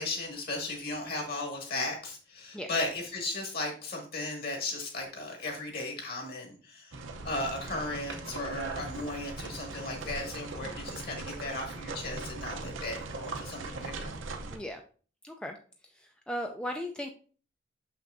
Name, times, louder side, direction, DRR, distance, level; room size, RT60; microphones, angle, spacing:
voice 1, 0.0-7.0 7.2-14.1, left 2 dB, 50° left, 1 dB, 2.0 m, -36 dB
sound 1, 6.9-14.6, right 3 dB, 80° right, 0.8 m, -39 dB
voice 2, 14.5-14.8 15.2-15.6 15.8-17.1, equal, 5° left, 3 dB, 0.3 m, -37 dB
6.6 x 5.9 x 2.6 m, 0.40 s
head